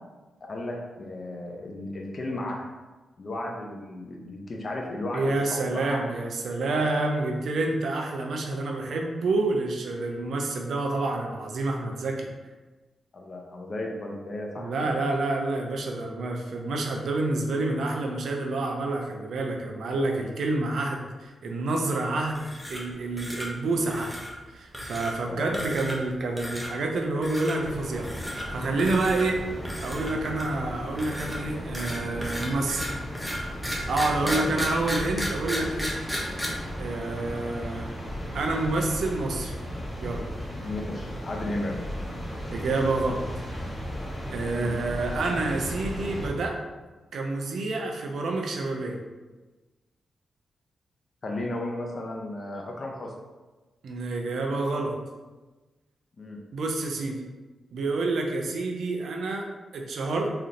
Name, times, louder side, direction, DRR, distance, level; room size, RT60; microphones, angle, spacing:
voice 1, 0.5-2.7 3.2-6.0 6.7-6.8 13.1-15.0 25.3-25.6 34.2-34.6 40.6-41.8 44.6-44.7 51.2-53.1 56.2-56.4, left 1 dB, 50° left, 0 dB, 0.7 m, -34 dB
voice 2, 5.1-12.3 14.6-24.1 24.5-29.4 29.8-32.9 33.9-35.9 36.8-37.9 38.3-39.6 40.0-40.2 42.5-43.2 44.3-46.6 47.1-49.0 53.8-54.9 56.5-57.2 57.7-59.5 59.7-60.3, right 2 dB, 75° right, 2 dB, 0.6 m, -28 dB
sound 1, 22.3-22.9 23.2-23.5 23.9-24.3 24.7-25.1 25.5-26.1 26.4-26.7 27.2-27.5 28.0-28.5 28.8-29.3 29.6-30.6 31.0-36.5, equal, ahead, 1.0 m, -34 dB
sound 2, 27.6-46.3, equal, 20° left, 1.3 m, -36 dB
3.8 x 3.4 x 2.8 m, 1.2 s
cardioid pair, 65°, 0 cm